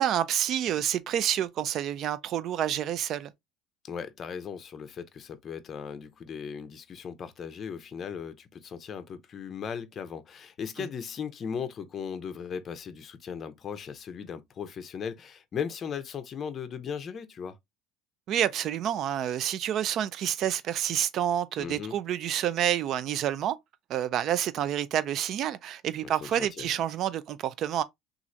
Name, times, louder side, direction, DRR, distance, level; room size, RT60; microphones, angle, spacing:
voice 1, 0.0-3.3 18.3-23.6 23.9-27.8, right 10 dB, 55° right, 0.4 m, -28 dB
voice 2, 3.8-17.6 21.6-22.0 26.0-26.7, left 7 dB, 40° left, 0.5 m, -37 dB
3.0 x 2.4 x 2.5 m
supercardioid pair, 95°, 0 cm